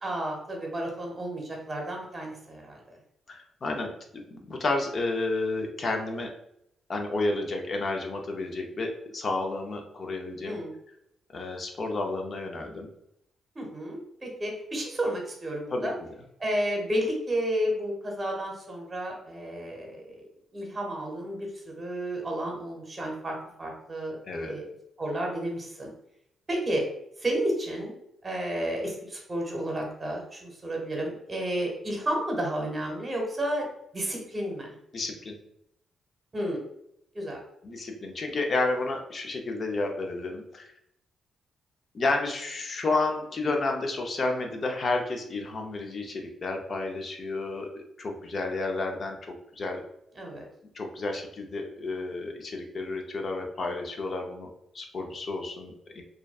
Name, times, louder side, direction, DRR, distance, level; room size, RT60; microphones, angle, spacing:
voice 1, 0.0-3.0 10.4-10.7 13.5-15.9 16.4-20.2 20.5-21.5 21.8-24.6 25.0-25.9 26.5-26.8 27.2-27.9 28.2-33.7 33.9-34.7 36.3-36.6 37.1-37.4 50.2-50.4, right 1 dB, 35° right, 0 dB, 0.9 m, -31 dB
voice 2, 3.3-3.9 4.3-6.3 6.9-10.6 11.3-12.9 15.7-15.9 24.3-24.5 34.9-35.3 37.6-40.7 41.9-49.8 50.7-54.5 54.7-56.0, left 2 dB, 50° left, 2 dB, 0.5 m, -31 dB
2.6 x 2.1 x 2.3 m, 0.77 s
cardioid pair, 70°, 0 cm